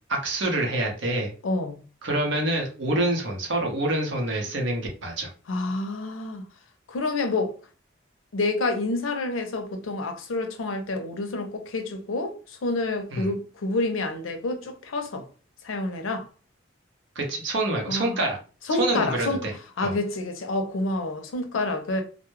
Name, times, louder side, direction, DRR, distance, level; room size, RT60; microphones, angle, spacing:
voice 1, 0.1-1.3 2.0-5.3 13.1-13.3 17.2-18.4 18.8-19.5 19.8-19.9, right 1 dB, 70° right, 0.7 m, -26 dB
voice 2, 1.4-1.8 5.5-6.4 6.9-7.5 8.3-15.2 15.6-16.3 17.9-18.2 18.7-19.5 19.8-22.0, left 2 dB, 90° left, 0.5 m, -28 dB
2.2 x 2.0 x 3.0 m
head